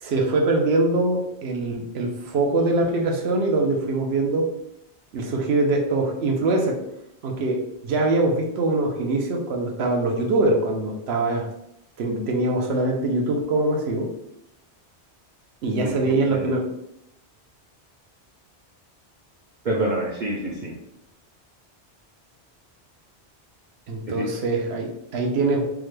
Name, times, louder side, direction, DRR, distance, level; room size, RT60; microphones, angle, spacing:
voice 1, 0.0-4.5 5.1-6.8 7.2-11.5 12.0-14.1 15.6-16.6 23.9-25.6, right 2 dB, 70° right, 2 dB, 0.9 m, -23 dB
voice 2, 15.8-16.5 19.6-20.7 24.1-24.3, right 1 dB, 55° right, -4 dB, 0.6 m, -27 dB
3.6 x 2.1 x 3.1 m, 0.78 s
omnidirectional pair, 1.1 m